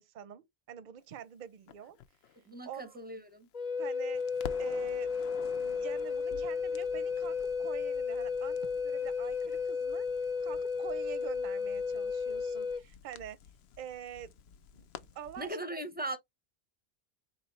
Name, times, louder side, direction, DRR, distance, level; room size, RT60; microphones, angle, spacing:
voice 1, 0.0-2.0 2.6-3.0 3.8-4.2 4.6-13.4 13.8-14.3 14.7-14.9 15.1-15.8, right 9 dB, 55° right, 0.7 m, -46 dB
Crackle, 1.7-3.8 4.1-15.5, left 7 dB, 75° left, 0.8 m, -52 dB
voice 2, 2.5-3.5 15.4-16.2, right 1 dB, 10° right, 0.6 m, -39 dB
Wind instrument woodwind instrument, 3.5-12.8, left 5 dB, 45° left, 0.8 m, -33 dB
4.2 x 3.1 x 3.0 m
omnidirectional pair, 1.1 m